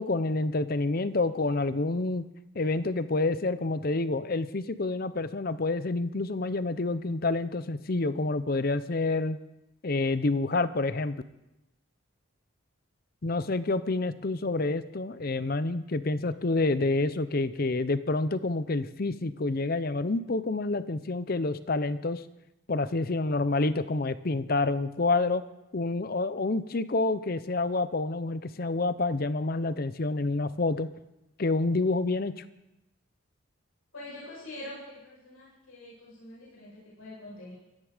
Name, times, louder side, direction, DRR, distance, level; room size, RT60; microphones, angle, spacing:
voice 1, 0.0-2.3 2.5-9.4 9.8-11.2 13.2-22.2 22.7-25.4 25.7-30.9 31.4-32.3, left 2 dB, 45° left, 14 dB, 0.7 m, -28 dB
voice 2, 33.9-37.5, left 1 dB, 85° left, -6 dB, 7.5 m, -44 dB
16.5 x 13.5 x 5.0 m, 0.94 s
head